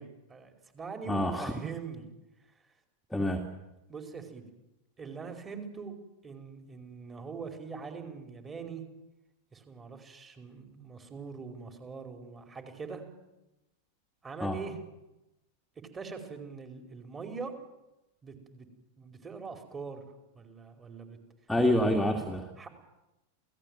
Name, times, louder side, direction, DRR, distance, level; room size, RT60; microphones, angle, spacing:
voice 1, 0.0-2.1 3.9-4.5 5.0-6.0 6.2-8.8 9.5-13.0 14.2-14.8 15.9-17.5 18.2-18.7 19.0-20.0 20.3-21.2 22.6-22.7, right 5 dB, 20° right, 5 dB, 5.0 m, -42 dB
voice 2, 1.1-1.5 3.1-3.4 14.4-14.6 21.5-22.5, left 1 dB, 5° left, 2 dB, 2.3 m, -27 dB
28.5 x 18.0 x 9.2 m, 0.96 s
figure-of-eight pair, 90°, 0 cm